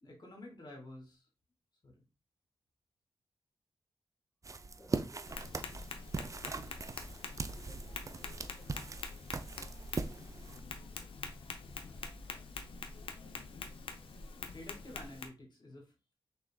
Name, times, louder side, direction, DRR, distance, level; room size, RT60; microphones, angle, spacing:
voice 1, 0.0-1.3 1.8-1.9 14.5-16.1, left 1 dB, 55° left, 0 dB, 2.3 m, -50 dB
sound 1, 4.4-10.6, right 4 dB, 35° right, 0.5 m, -41 dB
voice 2, 4.7-6.1 7.6-9.2 9.7-10.3, left 1 dB, 25° left, -5 dB, 1.7 m, -64 dB
Tap, 5.2-15.3, left 4 dB, 85° left, 0.7 m, -45 dB
sound 2, 7.0-12.7, right 2 dB, 10° right, 1.5 m, -59 dB
6.1 x 3.7 x 2.3 m, 0.29 s
cardioid pair, 70°, 9 cm